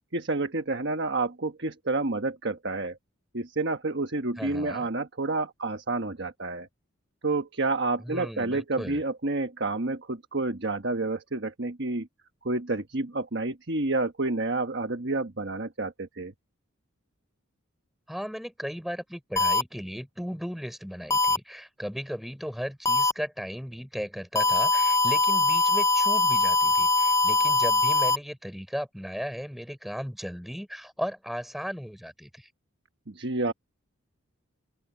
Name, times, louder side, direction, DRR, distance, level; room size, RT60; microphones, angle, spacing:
voice 1, 0.1-3.0 3.3-6.7 7.2-12.1 12.4-16.3 33.1-33.5, right 2 dB, 55° right, 1.4 m, -29 dB
voice 2, 4.4-4.9 8.0-9.0 18.1-32.5, equal, ahead, 4.6 m, -36 dB
sound 1, 19.4-19.6 21.1-21.4 22.9-23.1 24.4-28.2, left 3 dB, 15° left, 0.4 m, -22 dB
open air
head